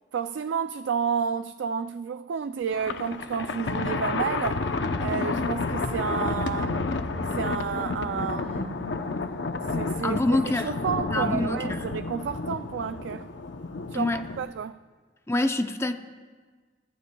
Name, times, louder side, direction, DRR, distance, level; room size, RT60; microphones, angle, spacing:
voice 1, 0.1-4.6 5.0-6.9 7.3-8.9 9.7-10.2 10.5-13.3 13.9-14.7, right 7 dB, 80° right, 0.3 m, -31 dB
Thunder, 2.7-14.5, left 3 dB, 80° left, 0.7 m, -30 dB
voice 2, 10.0-10.7 11.1-11.9 13.9-14.2 15.3-15.9, left 2 dB, 15° left, 0.5 m, -26 dB
22.5 x 14.5 x 2.3 m
head